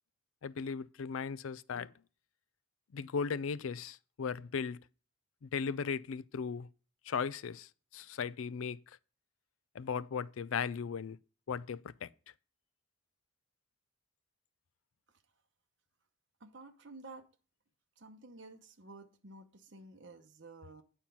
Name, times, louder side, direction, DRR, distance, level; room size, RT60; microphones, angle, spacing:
voice 1, 0.4-1.9 2.9-4.8 5.4-6.7 7.1-8.8 9.7-11.2 11.5-12.1, left 6 dB, 90° left, 0.4 m, -37 dB
voice 2, 16.4-17.3 18.0-20.8, right 3 dB, 60° right, 0.9 m, -52 dB
8.9 x 4.5 x 6.9 m
head